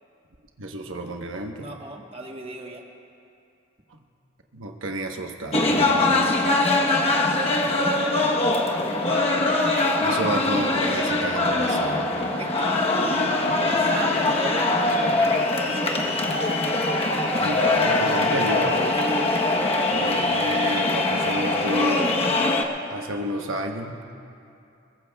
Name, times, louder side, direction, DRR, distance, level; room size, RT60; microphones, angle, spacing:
voice 1, 0.6-1.7 4.5-6.4 10.0-12.1 17.4-19.0 19.9-22.1 22.9-24.0, right 1 dB, 90° right, 3 dB, 1.0 m, -30 dB
voice 2, 1.6-2.8 6.7-8.4 12.4-12.8 13.4-16.1, right 2 dB, 30° right, 1 dB, 1.2 m, -36 dB
sound 1, 5.5-22.6, left 2 dB, 30° left, 1.0 m, -22 dB
22.0 x 21.5 x 2.3 m, 2.6 s
head